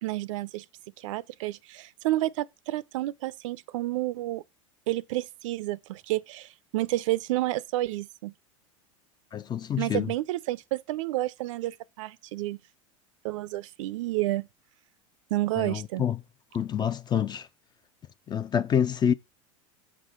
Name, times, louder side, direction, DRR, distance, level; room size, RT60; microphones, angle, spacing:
voice 1, 0.0-0.6 1.0-4.4 4.9-8.3 9.8-12.6 13.2-14.5 15.3-16.1, right 17 dB, 70° right, 0.5 m, -30 dB
voice 2, 9.3-10.1 15.6-16.2 16.5-17.5 18.3-19.1, left 8 dB, 25° left, 0.5 m, -27 dB
7.0 x 3.7 x 6.4 m
hypercardioid pair, 95°, 17 cm